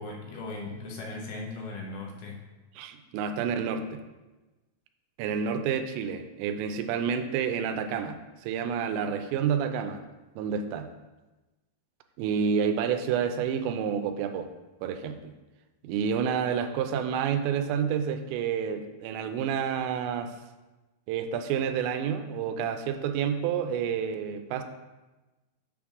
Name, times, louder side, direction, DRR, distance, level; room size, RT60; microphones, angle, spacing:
voice 1, 0.0-2.4, left 2 dB, 70° left, -1 dB, 2.7 m, -38 dB
voice 2, 2.8-3.8 5.2-10.0 10.4-10.9 12.2-14.5 14.8-15.2 15.8-20.3 21.1-24.6, right 7 dB, 85° right, 7 dB, 2.8 m, -29 dB
7.0 x 3.6 x 6.0 m, 1.1 s
omnidirectional pair, 5.0 m